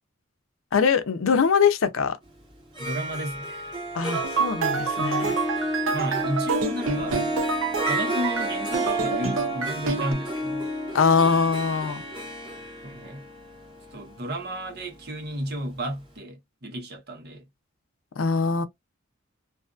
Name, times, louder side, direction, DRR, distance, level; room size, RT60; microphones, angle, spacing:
voice 1, 0.7-2.2 3.9-5.4 10.9-12.0 18.2-18.6, left 5 dB, 90° left, 0.5 m, -22 dB
Harp, 2.6-15.5, right 1 dB, 25° right, 1.1 m, -31 dB
voice 2, 2.8-3.7 5.9-7.2 7.9-10.7 12.8-13.2 13.9-17.4, equal, 55° right, 1.1 m, -32 dB
sound 1, 4.1-10.1, right 5 dB, 90° right, 0.6 m, -28 dB
2.6 x 2.5 x 2.3 m
head